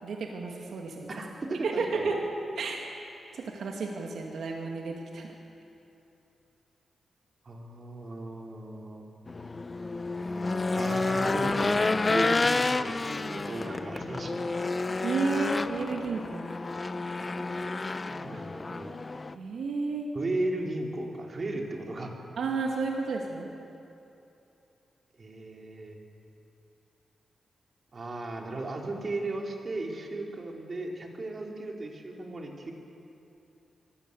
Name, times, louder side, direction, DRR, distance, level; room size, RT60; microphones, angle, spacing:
voice 1, 0.0-1.1 1.6-2.2 2.6-2.8 3.3-5.3 15.0-16.5 18.3-18.4 19.3-20.1 22.4-23.5, right 4 dB, 80° right, 0 dB, 2.2 m, -32 dB
voice 2, 1.1-2.1 7.4-9.1 10.7-14.5 18.1-18.9 20.1-22.1 25.2-26.0 27.9-32.7, right 2 dB, 40° right, 1 dB, 3.0 m, -36 dB
Race car auto racing / Engine, 9.3-19.3, left 3 dB, 30° left, 0.6 m, -30 dB
24.0 x 13.5 x 8.4 m, 2.8 s
cardioid pair, 95°, 0 cm